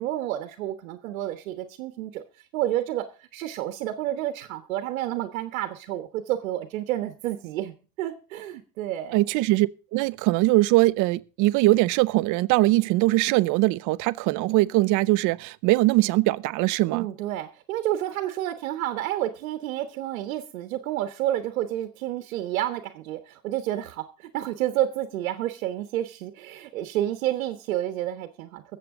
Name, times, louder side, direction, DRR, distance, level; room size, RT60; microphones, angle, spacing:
voice 1, 0.0-2.2 2.5-3.0 3.3-9.2 16.9-28.6, right 13 dB, 85° right, 1.3 m, -30 dB
voice 2, 9.1-17.0, right 19 dB, 50° right, 0.7 m, -21 dB
21.5 x 7.6 x 3.7 m
supercardioid pair, 125°, 40 cm